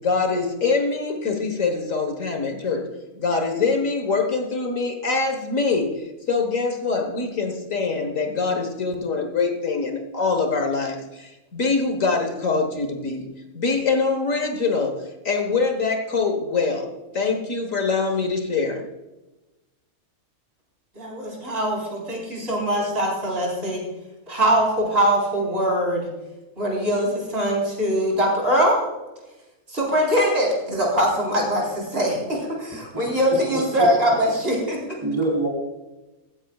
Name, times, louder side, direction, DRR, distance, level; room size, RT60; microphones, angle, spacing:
voice 1, 0.0-2.9 3.2-13.2 13.5-18.8, left 4 dB, 60° left, 4 dB, 1.7 m, -24 dB
voice 2, 21.0-23.8 24.3-26.1 26.6-28.9 29.7-35.0, equal, 40° right, -2 dB, 4.4 m, -22 dB
voice 3, 32.9-34.0 35.0-35.5, right 1 dB, 15° right, -1 dB, 4.0 m, -26 dB
15.5 x 15.0 x 2.4 m, 1.1 s
omnidirectional pair, 1.6 m